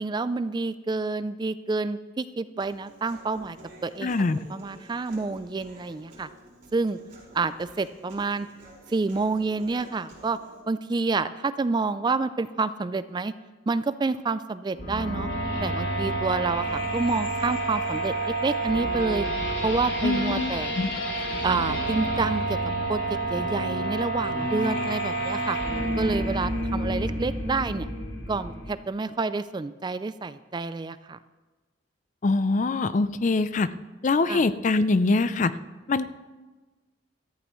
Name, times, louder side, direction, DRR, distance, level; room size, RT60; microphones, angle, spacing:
voice 1, 0.0-3.6 3.8-4.1 4.5-6.3 6.7-7.0 7.3-8.5 8.9-10.4 10.7-13.3 13.7-15.3 15.6-19.3 19.6-20.7 21.4-22.6 22.9-23.0 23.3-25.6 26.0-27.9 28.3-31.2 34.3-34.4, right 3 dB, 25° right, 14 dB, 0.3 m, -28 dB
Human voice, 2.6-10.6, equal, 50° right, 4.6 m, -50 dB
voice 2, 4.0-4.4 20.0-20.9 32.2-33.7 34.0-35.5 35.9-36.0, left 3 dB, 40° left, 14 dB, 0.4 m, -23 dB
sound 1, 14.7-28.7, right 1 dB, 75° left, 2.5 m, -29 dB
16.5 x 14.5 x 3.1 m, 1.3 s
head